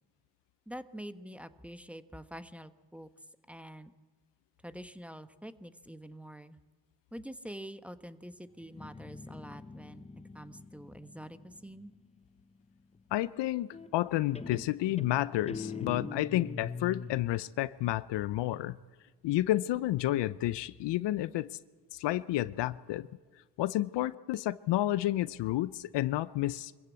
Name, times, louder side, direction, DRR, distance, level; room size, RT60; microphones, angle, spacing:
voice 1, 0.7-3.1 3.5-3.9 4.6-6.6 7.1-10.1 10.3-11.9, equal, 5° right, 11 dB, 1.2 m, -46 dB
Guitar, 8.6-12.2 13.7-14.1 14.4-17.3, left 4 dB, 15° left, 0.8 m, -43 dB
voice 2, 13.1-18.8 19.2-21.5 21.9-23.1 23.6-26.7, left 15 dB, 75° left, 17 dB, 0.7 m, -30 dB
24.0 x 15.0 x 8.3 m, 1.3 s
supercardioid pair, 55°, 43 cm